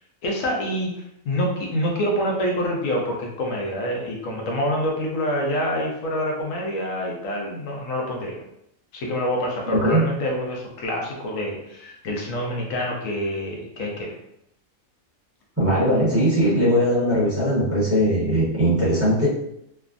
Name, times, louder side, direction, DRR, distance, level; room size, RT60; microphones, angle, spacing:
voice 1, 0.2-8.4 8.9-14.1, equal, 75° left, -1 dB, 1.1 m, -26 dB
voice 2, 9.7-10.1 15.6-19.3, equal, 10° right, -8 dB, 1.0 m, -20 dB
3.3 x 2.1 x 2.4 m, 0.78 s
omnidirectional pair, 1.4 m